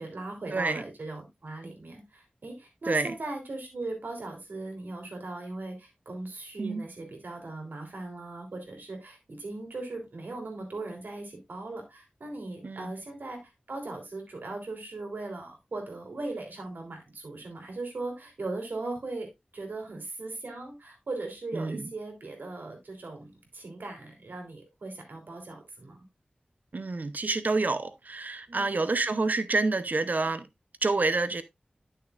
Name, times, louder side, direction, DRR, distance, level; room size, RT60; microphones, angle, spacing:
voice 1, 0.0-26.0 28.5-28.8, right 2 dB, 80° right, 3.3 m, -39 dB
voice 2, 0.5-0.8 2.9-3.1 6.6-6.8 12.6-12.9 21.5-21.9 26.7-30.5 30.8-31.4, right 3 dB, 60° right, 0.7 m, -28 dB
11.5 x 6.4 x 2.4 m
wide cardioid pair, 60°, 3 cm